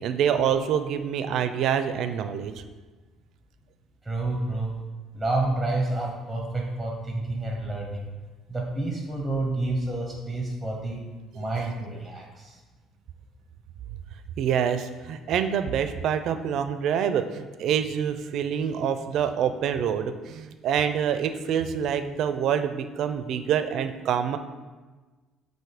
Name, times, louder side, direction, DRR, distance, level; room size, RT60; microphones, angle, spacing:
voice 1, 0.0-2.5 14.4-24.4, right 8 dB, 55° right, 10 dB, 0.4 m, -26 dB
voice 2, 4.0-4.8 5.1-8.1 8.5-11.0 11.3-12.6, right 2 dB, ahead, 0 dB, 0.7 m, -29 dB
7.7 x 2.7 x 4.9 m, 1.3 s
cardioid pair, 160°, 0 cm